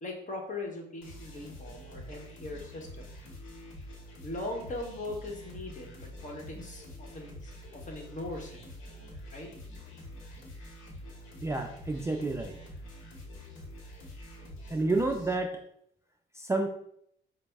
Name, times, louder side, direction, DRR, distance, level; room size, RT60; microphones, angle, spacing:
voice 1, 0.0-3.1 4.2-8.6 9.3-9.5, left 2 dB, 40° left, 1 dB, 1.1 m, -40 dB
sound 1, 1.0-15.3, left 1 dB, 90° left, 0.9 m, -46 dB
voice 2, 11.4-12.6 14.7-15.5 16.3-16.7, right 2 dB, 15° right, 3 dB, 0.3 m, -29 dB
5.0 x 2.0 x 3.4 m, 0.71 s
cardioid pair, 90°, 20 cm